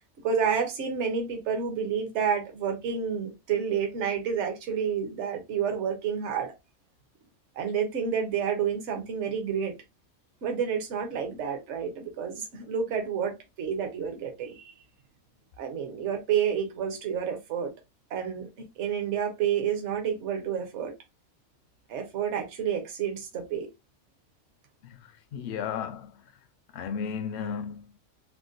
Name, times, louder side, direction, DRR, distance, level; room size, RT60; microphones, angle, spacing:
voice 1, 0.2-6.5 7.6-9.8 10.4-14.7 15.6-17.7 18.1-18.5 18.8-20.9 21.9-23.7, right 7 dB, 60° right, 1.1 m, -29 dB
voice 2, 24.8-26.2 26.7-27.9, left 7 dB, 65° left, 0.7 m, -34 dB
3.6 x 2.2 x 2.5 m
omnidirectional pair, 1.5 m